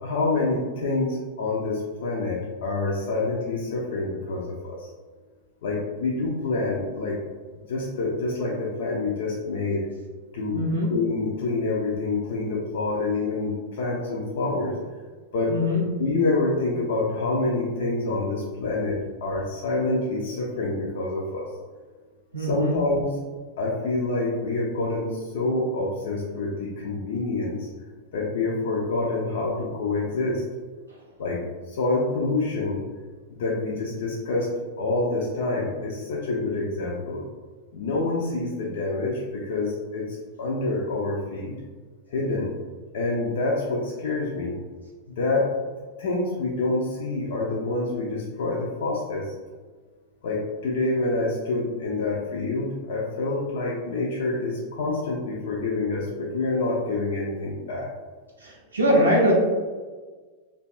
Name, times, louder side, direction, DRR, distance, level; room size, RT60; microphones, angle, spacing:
voice 1, 0.0-4.9 5.6-7.2 7.7-9.9 10.3-14.8 15.3-15.6 16.0-21.5 22.4-23.2 23.6-27.7 28.1-30.4 31.2-32.8 33.3-37.2 37.7-41.5 42.1-42.5 42.9-44.5 45.1-45.5 46.0-49.3 50.2-57.9, left 3 dB, 55° left, -2 dB, 0.4 m, -27 dB
voice 2, 10.5-10.9 15.5-15.9 22.3-22.8 58.4-59.3, equal, 75° right, -3 dB, 0.4 m, -22 dB
2.5 x 2.2 x 2.4 m, 1.4 s
figure-of-eight pair, 90°, 0 cm